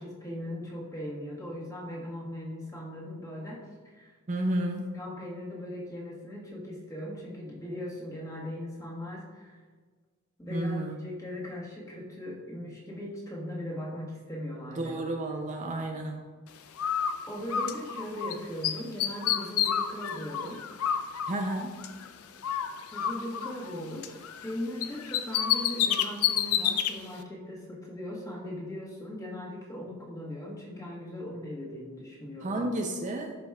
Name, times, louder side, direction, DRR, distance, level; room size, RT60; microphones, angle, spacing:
voice 1, 0.0-3.7 3.9-4.1 4.9-9.6 10.4-15.0 16.8-21.1 22.9-32.7, left 1 dB, 15° left, -4 dB, 1.5 m, -39 dB
voice 2, 4.3-4.9 10.5-11.0 14.7-16.2 21.2-21.8 32.4-33.4, right 1 dB, 35° right, 2 dB, 0.5 m, -31 dB
Bird, 16.8-18.3 18.6-22.1 22.4-24.5 24.8-26.9, left 9 dB, 75° left, 0.5 m, -29 dB
11.5 x 5.0 x 2.4 m, 1.5 s
head